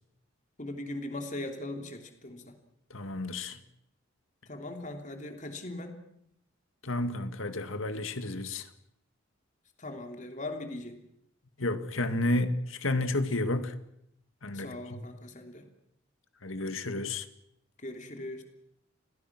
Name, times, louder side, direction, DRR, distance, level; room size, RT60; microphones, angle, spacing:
voice 1, 0.6-2.5 4.5-6.0 9.8-11.0 14.5-15.6 17.8-18.4, left 1 dB, 35° left, 3.1 m, -39 dB
voice 2, 2.9-3.6 6.8-8.7 11.6-13.7 14.4-15.0 16.4-17.3, left 2 dB, 80° left, 2.1 m, -31 dB
29.5 x 22.0 x 6.1 m
head